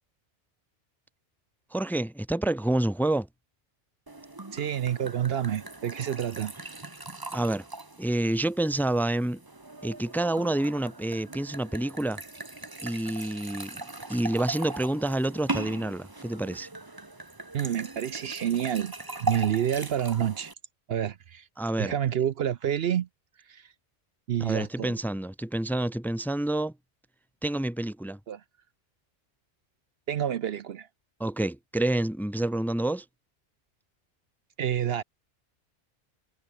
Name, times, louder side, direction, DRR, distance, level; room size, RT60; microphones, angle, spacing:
voice 1, 1.7-3.3 7.3-7.6 8.0-9.4 9.8-12.2 12.8-16.7 21.6-21.9 24.4-26.7 27.4-28.2 31.2-33.0, right 1 dB, ahead, 0.8 m, -28 dB
sound 1, 4.1-20.5, right 2 dB, 20° right, 1.3 m, -39 dB
voice 2, 4.5-6.5 17.5-18.9 19.2-20.5 20.9-21.5 21.8-23.1 23.5-23.7 24.3-24.9 28.3-28.4 30.1-30.9 34.6-35.0, right 10 dB, 65° right, 0.8 m, -28 dB
omnidirectional pair, 1.2 m